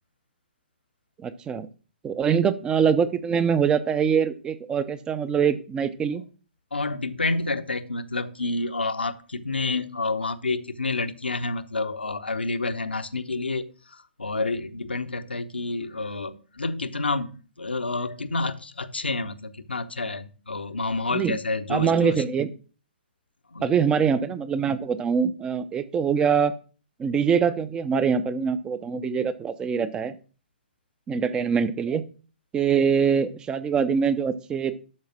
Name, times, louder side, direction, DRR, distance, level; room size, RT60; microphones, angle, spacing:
voice 1, 1.2-1.7 2.0-6.2 21.1-21.4 21.7-22.5 23.6-26.5 27.0-30.1 31.1-32.0 32.5-34.7, right 6 dB, 15° right, 15 dB, 0.7 m, -23 dB
voice 2, 6.7-22.2 23.5-23.8, left 3 dB, 75° left, 10 dB, 0.9 m, -29 dB
12.0 x 4.8 x 6.0 m, 0.38 s
figure-of-eight pair, 125°, 6 cm